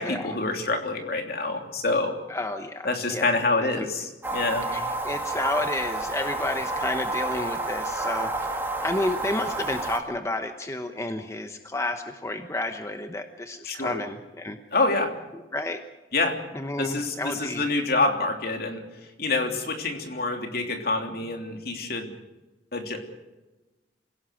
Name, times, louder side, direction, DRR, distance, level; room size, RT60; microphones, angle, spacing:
voice 1, 0.0-2.1 2.8-4.7 13.6-13.9 14.7-15.1 16.1-16.3 16.8-18.8 19.2-22.1 22.7-23.0, left 3 dB, 60° left, 4 dB, 3.2 m, -26 dB
voice 2, 2.3-3.9 4.6-14.6 15.3-15.8 16.5-17.7, left 2 dB, 15° left, 7 dB, 1.0 m, -31 dB
sound 1, 4.2-10.0, right 2 dB, 10° right, 2.4 m, -30 dB
27.5 x 17.0 x 6.4 m, 1.1 s
head